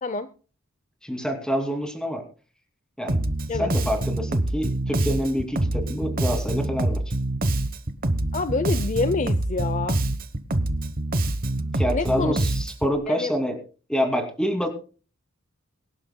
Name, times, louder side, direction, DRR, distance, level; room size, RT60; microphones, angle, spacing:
voice 1, 1.0-2.2 3.0-3.2 3.6-7.0 11.7-13.6 13.9-14.7, equal, 5° left, 4 dB, 2.6 m, -27 dB
Bass guitar, 3.1-13.0, right 1 dB, 45° right, 1.0 m, -25 dB
voice 2, 8.3-10.0 11.9-12.4 13.1-13.3, left 3 dB, 35° left, 12 dB, 0.6 m, -27 dB
23.5 x 11.5 x 2.2 m, 0.37 s
head